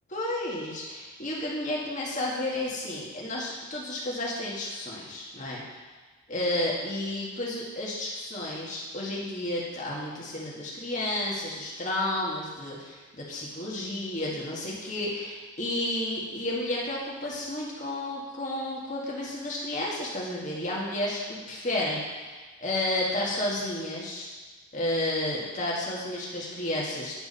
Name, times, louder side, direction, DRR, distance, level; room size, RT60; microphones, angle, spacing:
voice 1, 0.1-5.6 6.3-24.3 24.7-27.1, left 1 dB, 35° left, -4 dB, 1.9 m, -31 dB
10.5 x 4.8 x 5.6 m, 1.3 s
head